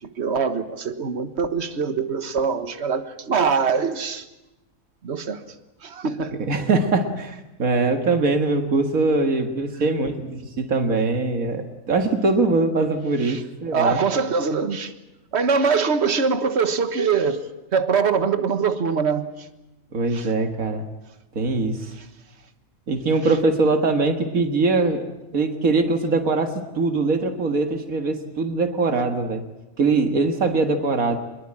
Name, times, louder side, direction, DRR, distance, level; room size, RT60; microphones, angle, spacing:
voice 1, 0.0-4.3 5.0-5.6 5.8-6.4 9.7-9.9 13.2-13.4 13.7-14.9 15.3-19.5 20.1-20.3 22.0-22.1 23.2-23.4, right 5 dB, 55° right, 1.6 m, -23 dB
voice 2, 6.5-14.0 19.9-20.9 21.4-21.9 22.9-25.0 25.3-29.4 29.8-31.2, right 3 dB, 80° right, 2.2 m, -22 dB
24.5 x 21.5 x 8.8 m
omnidirectional pair, 1.4 m